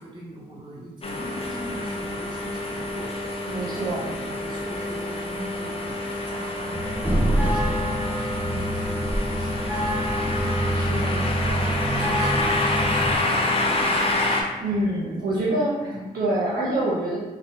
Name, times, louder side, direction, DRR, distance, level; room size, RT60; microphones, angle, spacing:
voice 1, 0.0-15.6 15.8-16.1 16.6-16.7, right 1 dB, 30° right, -5 dB, 0.9 m, -40 dB
sound 1, 1.0-14.4, left 2 dB, 40° left, 0.5 m, -28 dB
voice 2, 3.5-4.1 10.7-11.3 14.6-15.7 16.1-17.2, right 1 dB, 70° right, -5 dB, 0.5 m, -26 dB
sound 2, 6.7-13.1, equal, 10° right, 0.5 m, -26 dB
3.6 x 2.0 x 2.6 m, 1.2 s
cardioid pair, 60°, 16 cm